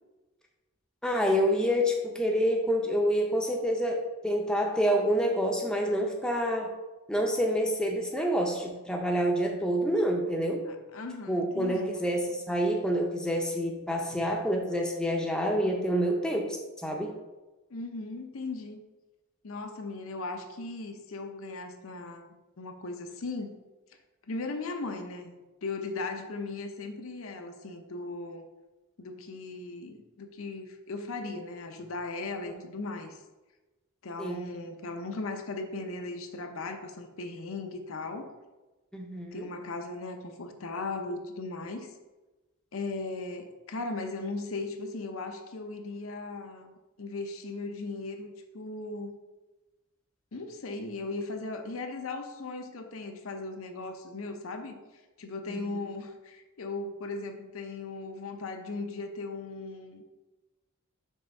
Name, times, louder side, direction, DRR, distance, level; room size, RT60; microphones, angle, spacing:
voice 1, 1.0-6.7 7.1-10.7 11.3-17.1 32.5-32.6 34.2-34.4 38.9-39.4 55.5-55.8, equal, 5° left, 0 dB, 0.6 m, -28 dB
voice 2, 10.7-12.0 17.7-18.8 19.4-22.3 22.6-23.5 24.3-28.5 29.0-33.2 34.0-38.3 39.3-41.9 42.7-46.7 47.0-49.2 50.3-54.8 55.2-60.0, left 3 dB, 80° left, 5 dB, 0.7 m, -37 dB
5.5 x 3.5 x 5.3 m, 1.1 s
head